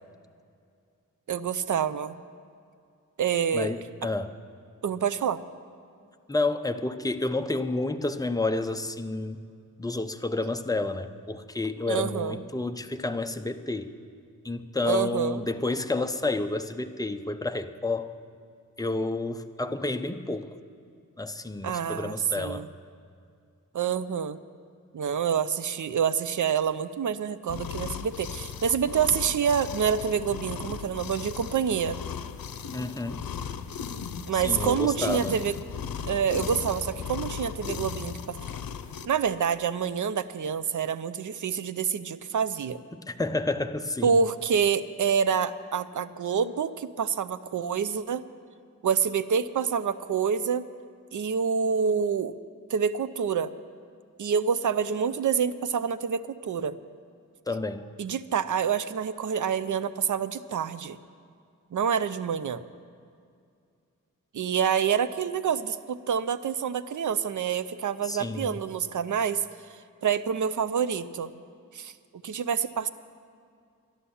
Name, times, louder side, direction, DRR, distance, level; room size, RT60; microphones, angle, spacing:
voice 1, 1.3-2.2 3.2-3.7 4.8-5.4 11.9-12.4 14.8-15.4 21.6-22.7 23.7-24.4 24.9-32.0 34.3-35.6 36.0-38.4 39.1-42.8 44.0-48.3 48.8-50.7 51.1-52.3 52.7-53.5 54.2-56.8 58.0-61.0 61.7-62.6 64.3-69.4 70.0-71.3 71.7-71.9 72.2-72.9, right 7 dB, 60° right, 12 dB, 0.5 m, -27 dB
voice 2, 3.5-4.3 6.3-9.5 9.8-13.9 14.4-18.1 18.8-20.5 21.2-22.7 32.7-33.3 34.3-35.4 42.9-44.2 57.5-57.9 68.0-68.6, left 2 dB, 10° left, 7 dB, 0.5 m, -30 dB
sound 1, 27.5-39.1, left 7 dB, 85° left, 0.7 m, -36 dB
11.5 x 11.5 x 7.0 m, 2.3 s
wide cardioid pair, 105°, 34 cm